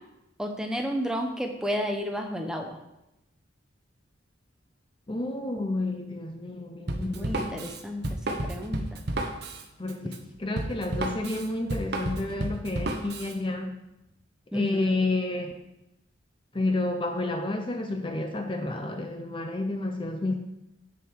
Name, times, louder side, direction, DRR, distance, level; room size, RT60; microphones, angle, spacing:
voice 1, 0.4-2.8 7.0-9.0 14.5-15.0, equal, 5° right, 3 dB, 0.8 m, -32 dB
voice 2, 5.1-7.7 9.8-13.8 14.5-15.6 16.5-20.3, left 2 dB, 25° left, 5 dB, 0.6 m, -30 dB
Drum kit, 6.9-13.3, right 1 dB, 55° right, 0.9 m, -32 dB
8.5 x 6.7 x 4.6 m, 0.90 s
head